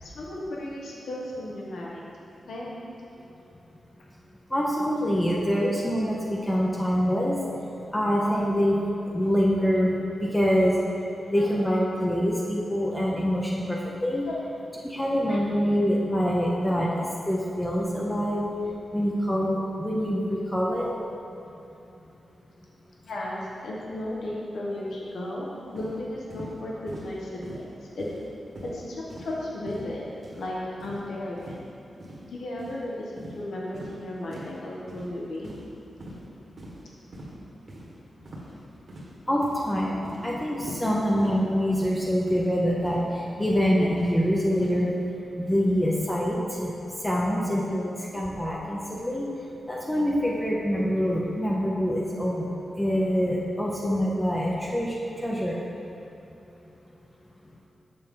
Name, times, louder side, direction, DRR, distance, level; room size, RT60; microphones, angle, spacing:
voice 1, 0.0-2.0 2.5-2.7 11.2-11.6 14.3-14.5 15.3-15.4 16.6-16.8 23.0-28.1 28.6-30.1 30.3-31.6 32.2-35.5 48.7-49.0, left 1 dB, 80° left, -4 dB, 1.1 m, -35 dB
voice 2, 4.5-7.4 7.9-8.8 9.1-10.8 11.3-14.2 14.8-18.5 18.9-20.9 39.3-43.0 43.4-45.0 45.4-46.7 47.0-49.3 49.7-52.5 52.8-55.6, equal, 10° left, -4 dB, 0.6 m, -25 dB
sound 1, 25.8-26.0 26.3-26.5 26.9-27.1 27.4-27.7 28.0-28.3 28.6-28.8 29.1-29.3 29.7-29.9 30.2-30.5 30.8-31.0 31.4-31.6 32.0-32.2 32.6-32.8 33.2-33.4 33.7-33.9 34.3-34.5 34.9-35.1 35.4-35.7 36.0-36.2 36.6-36.8 37.1-37.3 37.7-37.8 38.3-38.5 38.9-39.2 39.4-39.7 40.0-40.2 40.6-40.9 41.2-41.4 41.7-41.9 42.3-42.5 42.8-43.0 43.4-43.6 44.0-44.2 44.5-44.8, right 1 dB, 40° right, 1.3 m, -42 dB
6.6 x 5.9 x 3.7 m, 2.8 s
wide cardioid pair, 140°, 0 cm